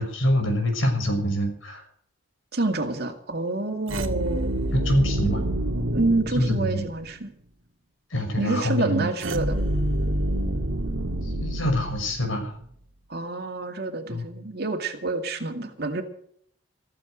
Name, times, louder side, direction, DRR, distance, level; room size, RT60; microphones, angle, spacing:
voice 1, 0.0-1.8 4.7-5.4 6.4-6.8 8.1-9.1 11.2-12.5 14.1-14.2, equal, 80° left, 4 dB, 5.9 m, -25 dB
voice 2, 2.5-4.5 5.9-7.3 8.4-9.6 13.1-16.0, right 2 dB, 50° right, 6 dB, 2.2 m, -28 dB
sound 1, 3.9-7.2 9.2-12.5, right 1 dB, 90° right, 2.0 m, -28 dB
15.0 x 15.0 x 5.1 m, 0.64 s
head